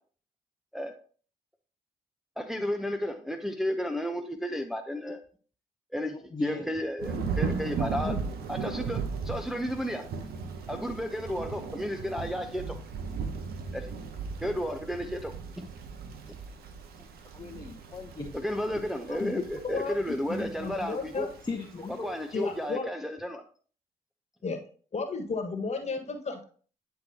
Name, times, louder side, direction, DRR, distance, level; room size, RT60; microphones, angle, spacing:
voice 1, 2.4-5.2 5.9-8.1 8.5-10.1 10.7-12.8 13.7-13.9 14.4-15.7 18.3-21.3 22.0-23.4, equal, ahead, 4 dB, 0.8 m, -33 dB
voice 2, 6.3-6.7 7.2-7.3 8.0-8.2 17.3-18.4 19.2-19.4 21.4-22.1, left 4 dB, 25° left, 2 dB, 1.0 m, -36 dB
Thunder / Rain, 7.0-22.6, right 5 dB, 70° right, 0.9 m, -37 dB
voice 3, 19.6-21.3 22.3-22.9 24.4-24.6 24.9-26.4, left 4 dB, 40° left, 4 dB, 1.6 m, -33 dB
9.3 x 4.6 x 2.9 m, 0.42 s
hypercardioid pair, 50°, 17 cm